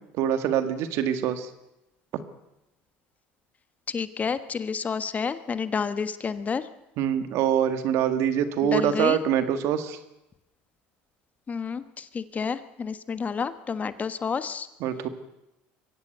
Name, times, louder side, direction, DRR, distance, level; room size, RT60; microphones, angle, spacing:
voice 1, 0.1-1.5 7.0-10.0 14.8-15.1, right 9 dB, 70° right, 10 dB, 2.1 m, -24 dB
voice 2, 3.9-6.7 8.6-9.2 11.5-14.7, left 5 dB, 30° left, 12 dB, 1.4 m, -30 dB
22.5 x 16.5 x 8.0 m, 0.92 s
supercardioid pair, 90°, 5 cm